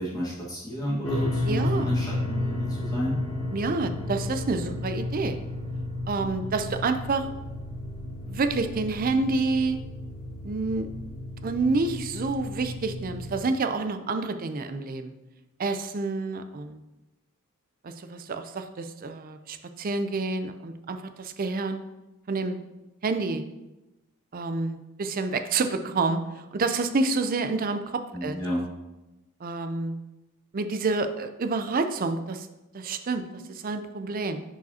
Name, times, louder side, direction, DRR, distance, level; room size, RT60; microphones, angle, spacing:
voice 1, 0.0-3.2 28.1-28.6, equal, 15° left, -7 dB, 1.5 m, -31 dB
sound 1, 1.0-13.4, left 1 dB, 70° left, 1.3 m, -33 dB
voice 2, 1.5-1.9 3.5-5.4 6.1-7.2 8.2-9.8 10.4-10.9 11.4-15.1 15.6-16.8 17.8-21.8 22.3-22.6 23.0-23.4 24.3-28.4 29.4-30.0 30.5-32.5 32.7-34.4, right 3 dB, 40° right, 9 dB, 0.5 m, -28 dB
10.5 x 5.0 x 2.8 m, 1.0 s
head